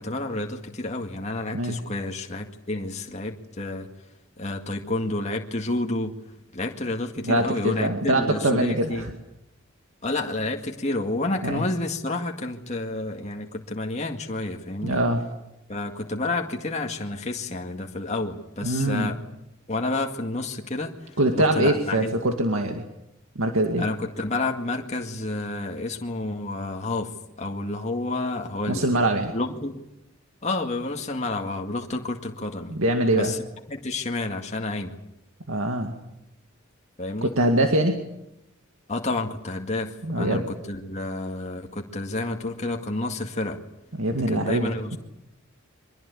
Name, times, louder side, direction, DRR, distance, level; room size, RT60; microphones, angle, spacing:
voice 1, 0.0-3.9 4.4-6.2 6.5-9.0 10.0-15.0 15.7-19.2 19.7-22.2 23.8-27.1 27.4-28.9 29.3-29.7 30.4-32.7 33.1-33.4 33.7-35.0 37.0-37.3 38.9-43.6 44.1-45.0, left 2 dB, 35° left, 2 dB, 2.0 m, -30 dB
voice 2, 7.2-9.1 11.4-11.7 14.8-15.2 18.6-19.2 21.2-22.8 23.4-23.8 28.7-29.3 32.7-33.3 35.5-36.0 37.2-38.0 40.0-40.4 44.0-45.0, right 1 dB, 75° right, 4 dB, 2.2 m, -23 dB
24.0 x 21.0 x 8.6 m, 0.88 s
head